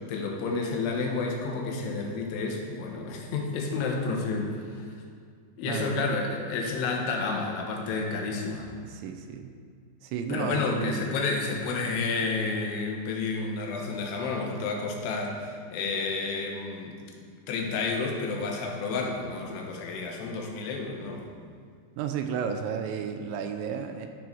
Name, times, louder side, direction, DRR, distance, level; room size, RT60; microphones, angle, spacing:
voice 1, 0.1-4.9 5.6-8.7 10.3-17.0 17.5-21.2, left 4 dB, 70° left, 1 dB, 3.1 m, -30 dB
voice 2, 5.6-6.1 8.8-9.6 10.0-11.0 22.0-24.1, right 7 dB, 85° right, 6 dB, 2.9 m, -33 dB
13.5 x 6.3 x 4.5 m, 2.1 s
omnidirectional pair, 5.2 m